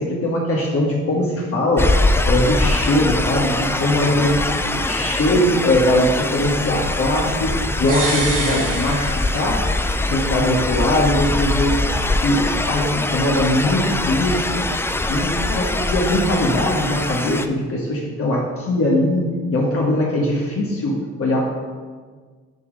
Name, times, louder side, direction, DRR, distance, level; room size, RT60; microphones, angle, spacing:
voice 1, 0.0-1.9 2.2-4.5 4.7-9.6 10.1-11.8 12.2-14.6 15.1-19.2 19.5-21.5, left 1 dB, 50° left, -3 dB, 1.3 m, -20 dB
sound 1, 1.8-17.5, left 2 dB, 10° left, 0.3 m, -22 dB
sound 2, 7.9-9.8 10.1-10.2, right 2 dB, 30° right, 2.0 m, -27 dB
6.9 x 4.7 x 5.1 m, 1.5 s
cardioid pair, 90°, 30 cm